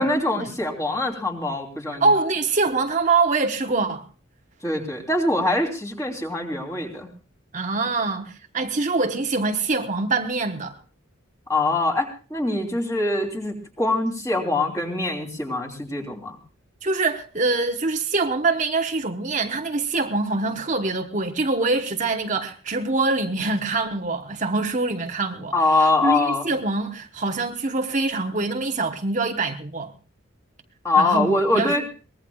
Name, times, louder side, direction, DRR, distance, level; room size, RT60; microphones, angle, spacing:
voice 1, 0.0-2.0 4.6-7.1 11.5-16.4 25.5-26.5 30.8-31.8, left 2 dB, 15° left, 3.2 m, -23 dB
voice 2, 2.0-4.0 7.5-10.8 16.8-29.9 31.0-31.8, right 3 dB, 35° right, 1.1 m, -24 dB
23.5 x 20.0 x 2.3 m
head